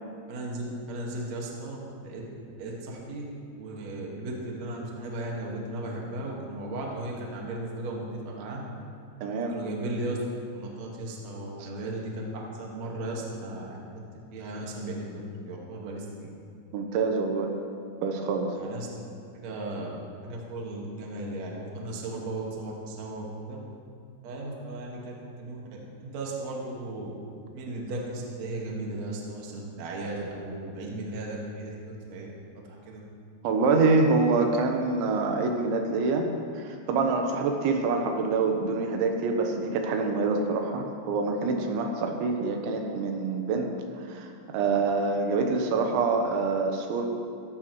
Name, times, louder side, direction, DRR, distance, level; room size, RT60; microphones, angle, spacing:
voice 1, 0.3-2.2 2.6-3.2 3.6-8.6 9.5-10.2 10.5-12.2 12.5-14.0 14.3-15.1 15.4-16.3 18.6-18.9 19.3-23.6 24.2-27.1 27.5-32.3 32.6-33.0, right 2 dB, 50° right, -2 dB, 2.3 m, -36 dB
voice 2, 9.2-9.6 16.7-17.5 18.0-18.5 33.4-36.3 36.6-47.1, right 4 dB, 85° right, 3 dB, 3.5 m, -26 dB
16.5 x 14.5 x 3.1 m, 2.4 s
omnidirectional pair, 5.1 m